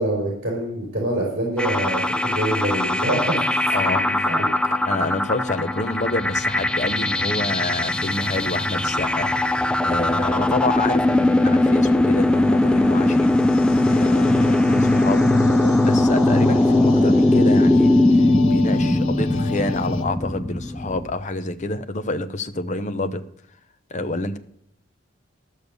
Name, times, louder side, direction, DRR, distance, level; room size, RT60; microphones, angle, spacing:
voice 1, 0.0-3.6 3.9-4.5, right 1 dB, 50° right, -2 dB, 3.9 m, -25 dB
sound 1, 1.6-21.0, left 1 dB, 5° left, 0.3 m, -20 dB
voice 2, 3.7-4.3 4.7-13.3 13.9-15.3 15.8-23.2 23.9-24.4, left 2 dB, 35° left, 9 dB, 0.7 m, -28 dB
sound 2, 6.1-21.1, equal, 15° right, 1.9 m, -38 dB
sound 3, 8.7-20.1, left 2 dB, 70° left, 1.1 m, -30 dB
12.5 x 6.5 x 6.7 m, 0.72 s
head